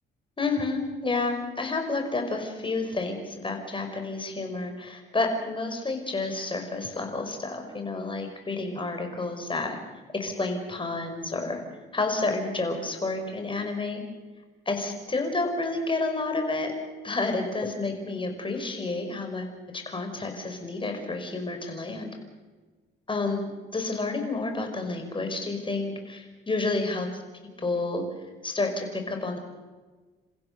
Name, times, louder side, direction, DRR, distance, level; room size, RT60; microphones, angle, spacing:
voice 1, 0.4-9.8 10.1-11.6 11.9-14.0 14.7-16.7 17.0-22.1 23.1-27.1 27.6-28.0 28.4-29.4, left 3 dB, 25° left, 4 dB, 5.5 m, -30 dB
29.0 x 15.5 x 6.9 m, 1.3 s
cardioid pair, 90°, 20 cm